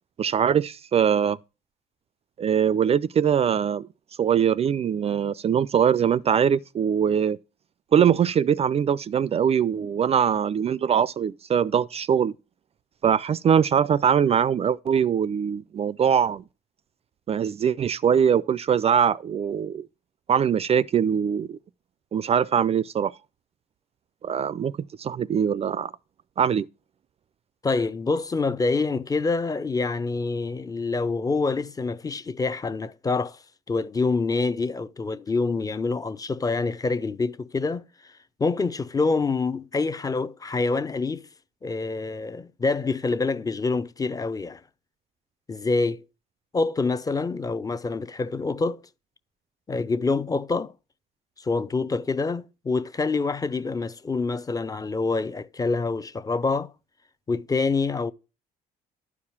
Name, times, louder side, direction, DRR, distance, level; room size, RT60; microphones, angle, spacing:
voice 1, 0.2-1.4 2.4-3.9 4.2-7.4 7.9-12.3 13.0-16.4 17.3-19.9 20.3-21.6 22.1-23.1 24.2-24.7 25.0-25.9 26.4-26.7, right 8 dB, 35° right, 0.4 m, -22 dB
voice 2, 27.6-33.4 33.7-38.1 38.4-41.2 41.6-44.6 45.5-46.0 46.5-48.8 49.7-50.7 51.4-56.7 57.3-58.1, left 3 dB, 20° left, 0.7 m, -26 dB
12.0 x 4.8 x 7.2 m
cardioid pair, 110°, 17 cm